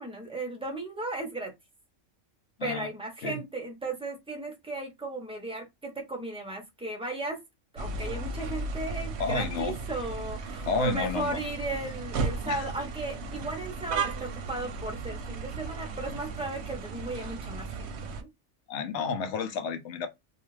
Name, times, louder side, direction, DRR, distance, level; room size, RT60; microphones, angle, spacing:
voice 1, 0.0-1.5 2.6-7.4 7.7-17.9 18.2-18.3, right 2 dB, 10° right, 0.3 m, -35 dB
sound 1, 7.8-18.2, right 4 dB, 65° right, 0.8 m, -35 dB
voice 2, 9.2-9.8 10.7-11.4 12.4-12.7 18.7-20.1, left 4 dB, 65° left, 0.8 m, -31 dB
2.4 x 2.4 x 3.1 m
omnidirectional pair, 1.3 m